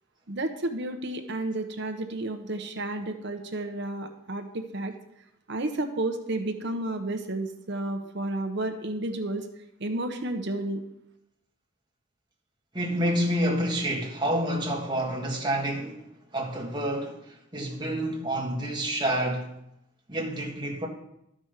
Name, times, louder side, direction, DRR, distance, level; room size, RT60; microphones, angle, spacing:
voice 1, 0.3-4.9 5.5-9.5 9.8-10.8, right 2 dB, 55° right, 0.9 m, -31 dB
voice 2, 12.7-16.1 16.3-17.2 17.5-19.5 20.1-20.9, right 1 dB, 20° right, 1.6 m, -28 dB
12.5 x 5.2 x 6.5 m
head